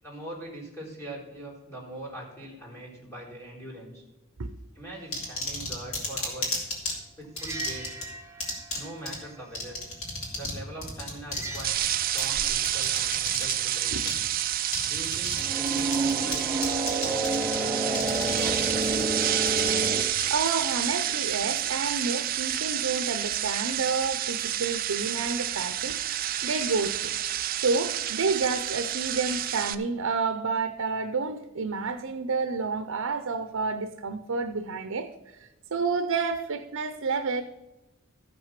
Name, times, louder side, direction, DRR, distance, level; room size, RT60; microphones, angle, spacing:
voice 1, 0.0-4.0 4.7-6.6 7.2-7.9 8.7-9.8 10.3-14.2 14.9-16.5 17.0-19.2, right 1 dB, 15° left, -6 dB, 3.9 m, -42 dB
sound 1, 5.1-6.9 7.4-8.0 8.4-8.8 9.1-9.2 9.5-10.6 10.8-13.5 14.1-14.2 14.7-15.4 15.7-16.4 16.6-17.6 17.9-20.2, left 2 dB, 90° left, 3.4 m, -32 dB
sound 2, 7.4-8.9 11.3-12.0 15.2-20.0, right 2 dB, 15° right, 0.7 m, -30 dB
sound 3, 11.6-29.8, right 12 dB, 45° right, 0.5 m, -29 dB
voice 2, 20.3-26.0 26.4-27.1 27.6-35.1 35.4-37.4, right 4 dB, 85° right, 8 dB, 0.7 m, -29 dB
14.0 x 6.2 x 5.8 m, 1.0 s
head